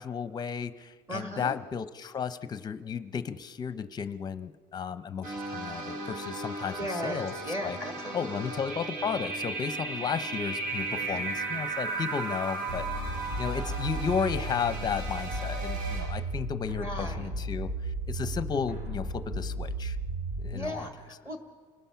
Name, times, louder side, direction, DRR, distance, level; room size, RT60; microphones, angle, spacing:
voice 1, 0.0-7.3 7.6-7.8 8.1-12.9 13.4-20.0 20.4-20.9, left 6 dB, 25° left, 12 dB, 0.7 m, -33 dB
voice 2, 1.1-1.5 6.8-8.5 11.1-11.2 16.8-17.3 20.5-21.4, equal, 15° right, 4 dB, 1.5 m, -36 dB
sound 1, 5.2-16.1, right 3 dB, 50° right, 6.4 m, -36 dB
sound 2, 12.7-20.7, right 1 dB, 90° right, 7.2 m, -34 dB
28.5 x 19.5 x 5.8 m, 1.5 s
cardioid pair, 170°, 17 cm